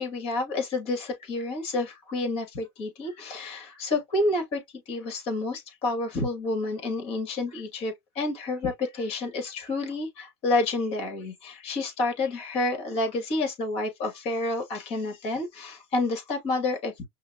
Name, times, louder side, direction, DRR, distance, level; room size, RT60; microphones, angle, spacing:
voice 1, 0.0-17.1, left 2 dB, 50° left, 2.2 m, -29 dB
5.5 x 2.3 x 2.8 m
supercardioid pair, 130°, 13 cm